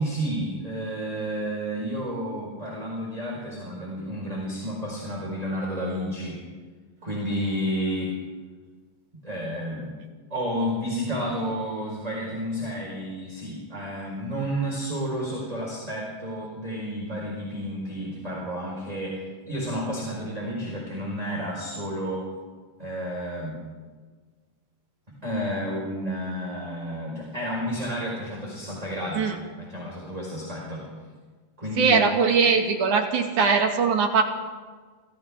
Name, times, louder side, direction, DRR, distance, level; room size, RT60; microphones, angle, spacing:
voice 1, 0.0-6.4 7.0-8.1 9.1-9.9 10.3-22.2 22.8-23.6 25.2-29.3 29.6-30.9 31.6-32.0, equal, 10° right, -3 dB, 4.6 m, -31 dB
voice 2, 31.8-34.2, right 5 dB, 60° right, 3 dB, 3.2 m, -21 dB
29.0 x 26.0 x 3.7 m, 1.4 s
omnidirectional pair, 4.2 m